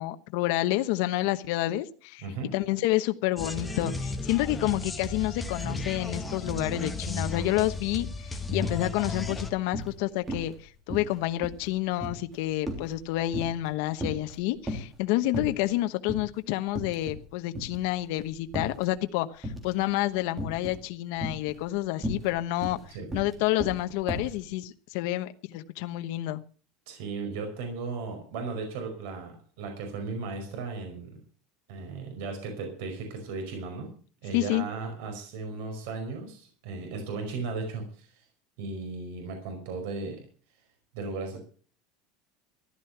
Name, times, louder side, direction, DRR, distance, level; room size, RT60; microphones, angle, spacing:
voice 1, 0.0-2.2 2.5-22.8 23.1-26.4 34.3-34.6, left 16 dB, 60° left, 1.0 m, -29 dB
voice 2, 2.2-2.5 22.9-23.1 26.9-31.2 31.7-33.9 34.2-38.2 38.6-40.2 40.9-41.4, right 4 dB, 70° right, 5.1 m, -36 dB
sound 1, 3.4-9.5, left 2 dB, 5° left, 1.4 m, -34 dB
sound 2, 7.6-7.8 8.1-8.8 9.2-10.0 10.3-10.6 10.9-13.7 14.0-15.0 15.3-15.8 16.1-16.3 16.7-17.3 17.5-18.9 19.4-19.8 20.4-20.8 21.2-24.4, equal, 10° right, 3.3 m, -36 dB
14.5 x 12.0 x 5.8 m
cardioid pair, 170°, 0 cm